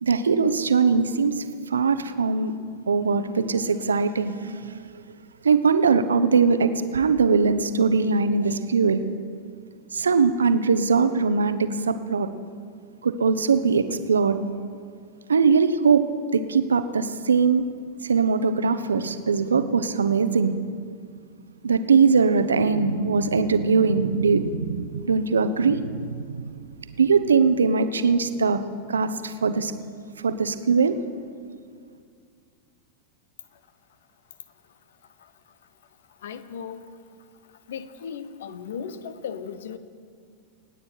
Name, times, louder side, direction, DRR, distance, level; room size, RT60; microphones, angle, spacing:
voice 1, 0.0-4.9 5.4-9.0 9.9-12.3 13.0-14.4 15.3-16.0 16.3-17.6 18.0-20.6 21.6-26.5 27.0-28.6 28.9-29.7 30.2-30.9, right 5 dB, 70° right, 11 dB, 0.8 m, -21 dB
voice 2, 34.9-35.6 36.1-36.9 37.4-39.8, left 7 dB, 60° left, 13 dB, 0.9 m, -37 dB
27.5 x 9.3 x 4.5 m, 2.2 s
figure-of-eight pair, 90°, 0 cm